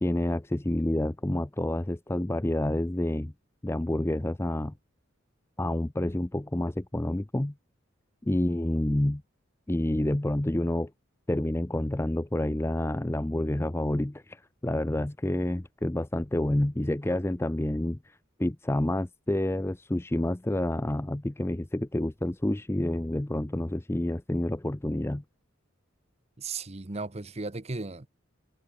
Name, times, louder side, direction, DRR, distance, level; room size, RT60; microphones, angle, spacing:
voice 1, 0.0-3.3 3.6-4.7 5.6-7.5 8.2-9.2 9.7-10.9 11.3-25.2, left 1 dB, 10° left, 0.5 m, -28 dB
voice 2, 26.4-28.1, right 3 dB, 30° right, 0.9 m, -36 dB
head